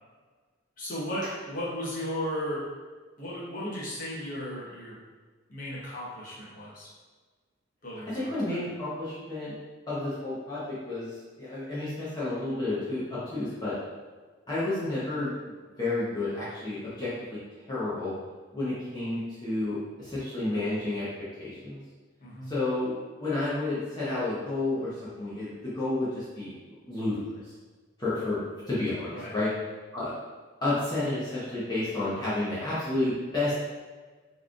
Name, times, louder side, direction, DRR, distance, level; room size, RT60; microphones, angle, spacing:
voice 1, 0.8-2.6 3.2-5.0 5.5-6.9 7.8-8.2 8.5-8.6 22.2-22.5 29.1-29.3, equal, 45° left, -7 dB, 1.0 m, -35 dB
voice 2, 8.1-9.5 9.9-13.7 14.5-15.5 15.8-17.4 17.7-18.1 18.5-21.1 21.4-21.8 22.5-22.9 23.2-26.5 26.8-27.5 28.0-28.4 28.7-29.5 29.9-30.1 30.6-33.5, left 2 dB, 20° left, -11 dB, 0.8 m, -31 dB
4.5 x 3.1 x 2.4 m, 1.4 s
head